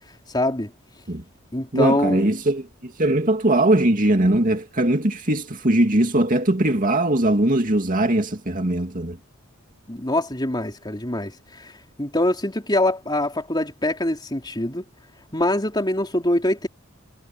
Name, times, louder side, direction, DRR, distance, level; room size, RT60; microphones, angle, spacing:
voice 1, 0.3-0.7 1.5-2.2 9.9-11.7 12.0-14.8 15.3-16.7, left 1 dB, 20° left, 3.9 m, -24 dB
voice 2, 1.7-9.2, right 1 dB, 40° right, 2.4 m, -20 dB
head